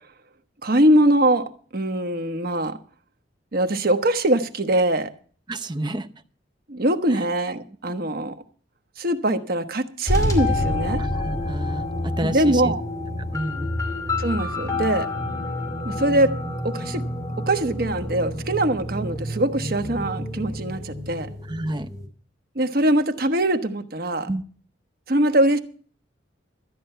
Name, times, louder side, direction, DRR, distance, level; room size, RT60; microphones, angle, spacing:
voice 1, 0.6-2.8 3.5-5.1 6.7-8.3 9.0-11.0 12.2-12.8 14.2-15.1 15.8-16.4 16.6-17.0 17.5-21.3 22.5-24.3 25.1-25.6, right 1 dB, 55° right, 8 dB, 1.2 m, -22 dB
voice 2, 5.5-6.1 7.1-7.2 11.0-12.7 13.3-13.7 21.5-21.9 24.3-24.4, right 1 dB, 25° right, 7 dB, 0.8 m, -30 dB
sound 1, 10.1-22.1, left 1 dB, 20° left, 2.6 m, -28 dB
13.5 x 9.4 x 5.6 m, 0.43 s
head